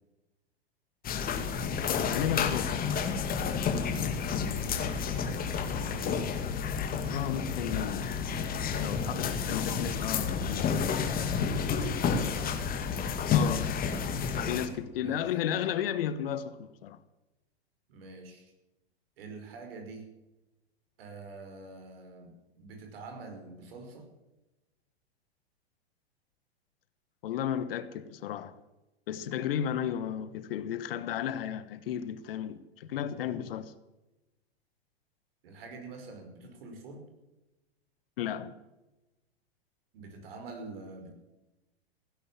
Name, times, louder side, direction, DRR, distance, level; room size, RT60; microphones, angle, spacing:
sound 1, 1.0-14.7, left 6 dB, 25° left, 2.0 m, -30 dB
voice 1, 2.0-2.8 7.1-8.2 8.8-11.2 13.3-13.7 14.5-17.0 27.2-28.6 29.1-33.7 38.2-38.5, left 10 dB, 60° left, 1.3 m, -33 dB
voice 2, 3.8-6.5 11.7-12.7 14.6-14.7 15.0-15.3 17.9-18.5 19.2-20.1 21.0-24.1 35.4-37.1 39.9-41.1, right 3 dB, 65° right, 5.3 m, -46 dB
16.5 x 11.0 x 7.4 m
hypercardioid pair, 105°, 32 cm